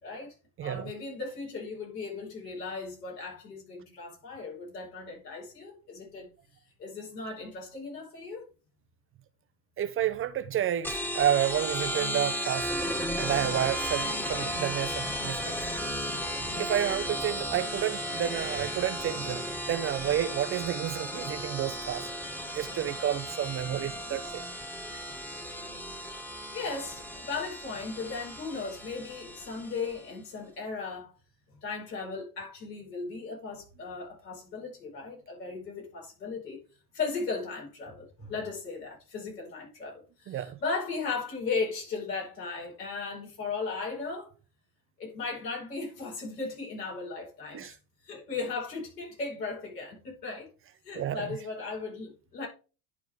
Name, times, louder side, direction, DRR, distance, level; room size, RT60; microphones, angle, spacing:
voice 1, 0.0-0.3 0.6-6.3 6.8-8.4 14.2-14.3 24.1-24.2 25.7-25.9 26.5-31.1 31.6-36.6 36.9-44.3 45.0-47.7 48.0-50.5 50.8-52.5, left 4 dB, 80° left, 5.3 m, -37 dB
voice 2, 0.6-0.9 9.8-12.7 13.2-15.5 16.6-22.1 22.5-24.4 24.9-25.0 40.3-40.6 47.5-47.7 50.9-51.2, right 11 dB, 30° right, 0.5 m, -30 dB
sound 1, 10.8-30.0, equal, 5° left, 1.3 m, -35 dB
11.0 x 4.6 x 3.6 m
hypercardioid pair, 75°, 48 cm